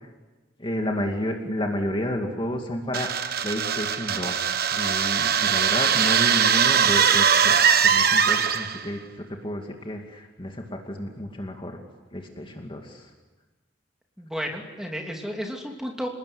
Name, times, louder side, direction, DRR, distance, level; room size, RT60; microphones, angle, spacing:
voice 1, 0.6-3.1 3.4-11.8 12.1-13.1, left 1 dB, 25° left, 2 dB, 2.5 m, -31 dB
sound 1, 2.9-8.9, right 7 dB, 55° right, 1.3 m, -21 dB
voice 2, 14.2-16.1, equal, 5° right, 1 dB, 3.1 m, -32 dB
28.5 x 20.0 x 9.7 m, 1.2 s
head